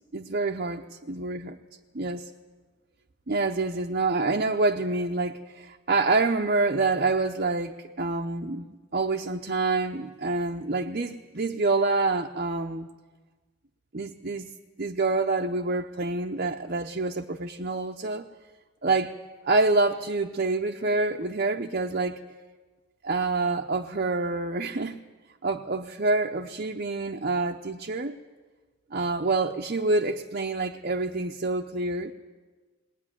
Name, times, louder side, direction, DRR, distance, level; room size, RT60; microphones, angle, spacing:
voice 1, 0.1-1.6 1.9-2.3 3.3-12.9 13.9-14.5 14.8-18.3 18.8-19.1 19.4-22.2 23.0-25.0 25.4-28.2 28.9-32.1, right 3 dB, 40° right, 2 dB, 0.8 m, -27 dB
20.5 x 19.5 x 9.9 m, 1.3 s
head